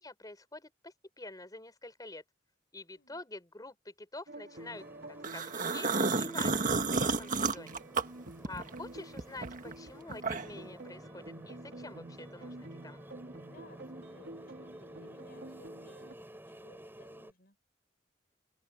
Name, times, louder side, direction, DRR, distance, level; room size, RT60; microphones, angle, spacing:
voice 1, 0.0-2.2 2.7-5.9 6.2-7.8 8.4-13.0, left 2 dB, 20° left, 4.4 m, -47 dB
sound 1, 4.3-16.1, right 2 dB, 65° right, 2.6 m, -49 dB
sound 2, 4.5-17.3, right 1 dB, 10° right, 7.8 m, -52 dB
sound 3, 5.2-8.8 9.2-10.7, right 4 dB, 45° right, 1.7 m, -31 dB
voice 2, 13.4-17.6, left 2 dB, 55° left, 6.7 m, -61 dB
open air
head